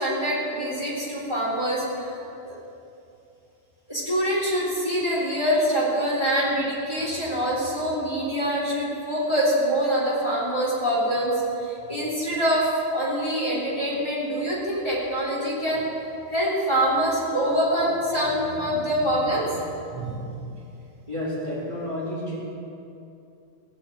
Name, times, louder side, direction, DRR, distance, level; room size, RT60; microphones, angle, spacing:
voice 1, 0.0-2.2 2.4-2.5 3.9-15.8 16.3-19.7 19.9-20.3, equal, 25° left, -6 dB, 3.6 m, -25 dB
voice 2, 21.1-22.4, left 1 dB, 25° right, -7 dB, 4.1 m, -30 dB
19.5 x 7.2 x 8.5 m, 2.7 s
omnidirectional pair, 1.2 m